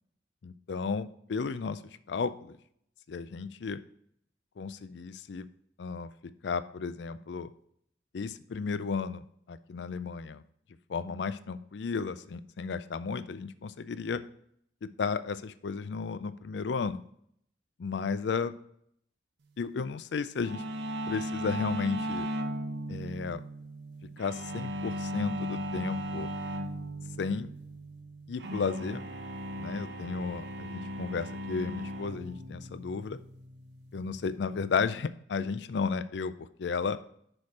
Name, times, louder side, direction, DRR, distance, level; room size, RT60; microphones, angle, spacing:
voice 1, 0.4-1.8 2.1-2.5 3.1-3.8 4.6-5.5 5.8-6.1 6.4-7.5 8.1-9.2 9.5-10.4 10.9-14.2 15.0-17.0 17.8-18.5 19.6-20.6 21.1-22.3 22.9-23.4 24.2-26.3 27.2-27.5 28.3-29.0 29.6-33.2 33.9-37.0, left 5 dB, 70° left, 14 dB, 0.4 m, -33 dB
sound 1, 20.4-34.9, equal, 70° right, 0.8 m, -38 dB
6.2 x 4.9 x 4.1 m, 0.67 s
head